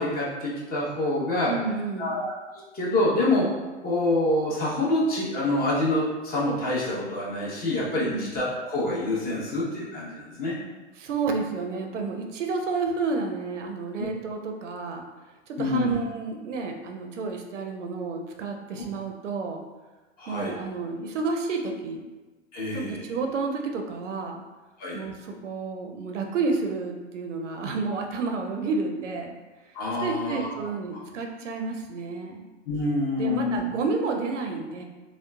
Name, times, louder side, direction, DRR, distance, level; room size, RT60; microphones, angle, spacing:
voice 1, 0.0-1.5 2.0-2.3 2.7-3.5 3.8-10.5 14.0-14.1 15.6-16.0 20.2-20.5 22.5-23.0 24.8-25.0 29.7-30.5 32.7-33.6, left 2 dB, 25° left, -6 dB, 0.8 m, -26 dB
voice 2, 1.5-2.2 8.0-8.3 11.0-15.0 15.5-19.6 20.3-22.0 22.7-24.4 24.9-29.3 30.0-32.4 33.2-34.8, right 4 dB, 85° right, 3 dB, 0.5 m, -30 dB
3.0 x 2.0 x 2.2 m, 1.2 s
hypercardioid pair, 115°, 35 cm